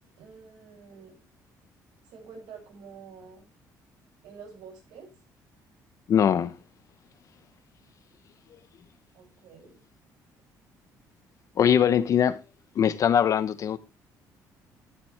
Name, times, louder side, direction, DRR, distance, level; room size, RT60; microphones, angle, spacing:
voice 1, 0.2-1.2 2.1-3.5 4.2-5.1 9.1-9.8, right 5 dB, 85° right, 6.9 m, -47 dB
voice 2, 6.1-6.5 11.6-12.4 12.8-13.8, left 8 dB, 50° left, 0.9 m, -21 dB
13.5 x 7.6 x 3.4 m
cardioid pair, 125°, 7 cm